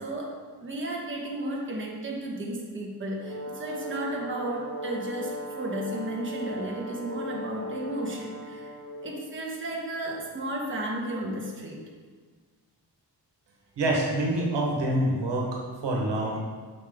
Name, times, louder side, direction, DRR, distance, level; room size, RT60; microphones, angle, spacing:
voice 1, 0.0-8.7 9.0-11.8, right 1 dB, 30° right, -2 dB, 1.2 m, -33 dB
Brass instrument, 3.2-9.2, equal, 30° left, 2.0 m, -38 dB
voice 2, 13.8-15.5 15.8-16.4, right 1 dB, 85° right, -2 dB, 1.4 m, -26 dB
6.3 x 5.6 x 3.6 m, 1.5 s
wide cardioid pair, 100°, 41 cm